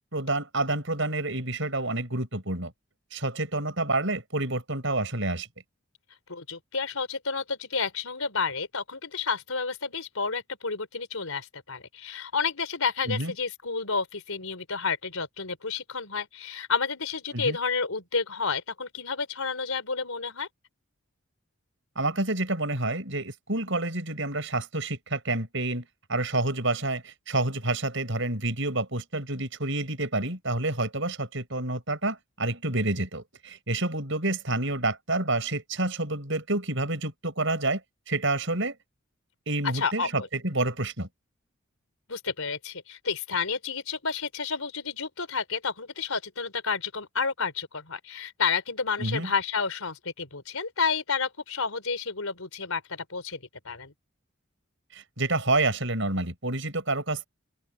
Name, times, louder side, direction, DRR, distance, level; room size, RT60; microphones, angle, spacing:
voice 1, 0.1-2.7 3.1-5.5 13.0-13.3 17.3-17.6 22.0-37.8 38.1-38.8 39.5-41.1 49.0-49.3 54.9-57.3, right 2 dB, 60° right, 7.0 m, -28 dB
voice 2, 6.3-20.5 39.7-40.1 42.1-53.9, left 5 dB, 85° left, 4.1 m, -30 dB
open air
head